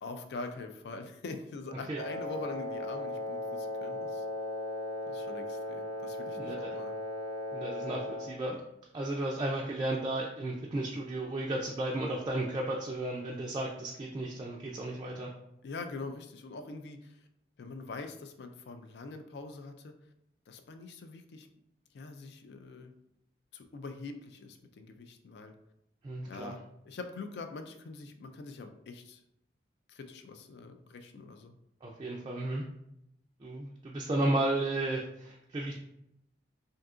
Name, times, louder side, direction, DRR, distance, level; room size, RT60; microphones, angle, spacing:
voice 1, 0.0-4.3 5.1-7.0 15.6-17.3 17.6-19.9 20.5-21.5 21.9-22.9 23.5-25.5 26.2-29.2 29.9-31.6, left 3 dB, 65° left, 7 dB, 0.3 m, -44 dB
Wind instrument woodwind instrument, 2.0-8.4, left 1 dB, 85° right, 0.5 m, -37 dB
voice 2, 6.4-6.8 7.5-8.6 8.9-15.3 26.0-26.6 31.8-32.6 33.4-35.7, right 1 dB, 25° right, -2 dB, 0.3 m, -33 dB
3.6 x 2.7 x 2.4 m, 0.80 s
head